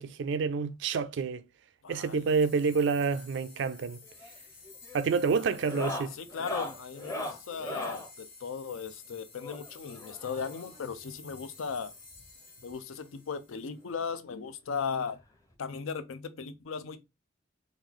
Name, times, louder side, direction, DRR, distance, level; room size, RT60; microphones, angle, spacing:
voice 1, 0.0-1.4 1.9-4.0 4.9-6.1, right 5 dB, 65° right, 0.3 m, -28 dB
voice 2, 1.8-2.2 6.2-11.9 12.6-15.2 15.6-17.0, left 6 dB, 90° left, 0.5 m, -37 dB
sound 1, 1.9-13.9, left 4 dB, 65° left, 1.3 m, -52 dB
sound 2, 4.0-4.4 4.6-5.0 5.5-8.1 9.4-10.8 11.8-11.9 12.1-12.3 12.7-12.8 14.1-14.2 15.5-15.6, left 1 dB, 15° left, 0.6 m, -39 dB
3.1 x 2.3 x 3.6 m
head